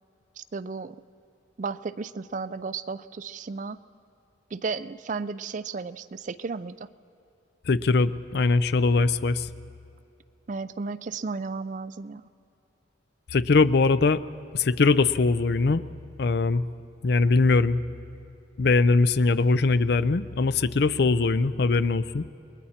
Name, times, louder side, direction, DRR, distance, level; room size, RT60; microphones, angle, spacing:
voice 1, 0.4-1.0 1.6-3.8 4.5-6.9 10.5-12.2, right 4 dB, 40° right, 15 dB, 0.4 m, -34 dB
voice 2, 7.7-9.5 13.3-14.2 14.5-15.8 16.2-16.6 17.0-17.8 18.6-22.3, left 3 dB, 55° left, 14 dB, 0.5 m, -21 dB
29.5 x 21.0 x 4.3 m, 2.8 s
head